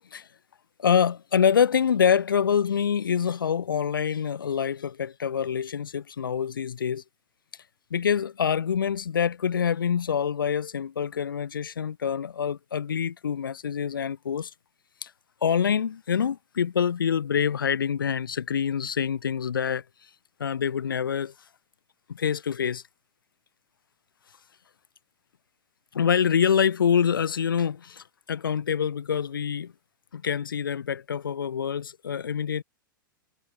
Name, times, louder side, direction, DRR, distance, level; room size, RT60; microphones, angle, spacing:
voice 1, 0.8-7.0 7.9-14.5 15.0-15.1 15.4-19.8 20.4-21.3 22.1-22.8 25.9-29.7 30.1-32.6, left 7 dB, 70° left, 0.4 m, -26 dB
figure-of-eight pair, 100°, 12 cm